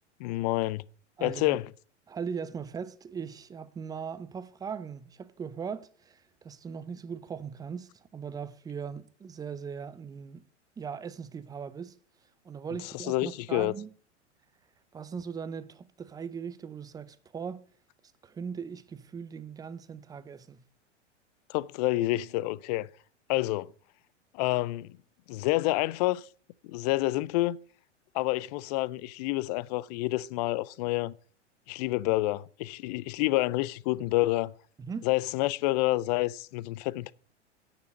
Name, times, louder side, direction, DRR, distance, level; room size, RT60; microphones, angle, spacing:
voice 1, 0.2-0.8 1.2-1.6 12.9-13.7 21.5-22.9 23.3-23.7 24.3-24.9 25.3-26.3 26.6-27.6 28.1-31.1 31.7-34.5 35.0-37.1, left 18 dB, 35° left, 0.5 m, -28 dB
voice 2, 1.2-1.6 2.1-10.4 10.8-11.9 12.4-13.9 14.9-17.6 18.2-20.6 34.8-35.1, right 6 dB, 10° right, 0.6 m, -39 dB
9.8 x 6.9 x 6.3 m
figure-of-eight pair, 95°, 36 cm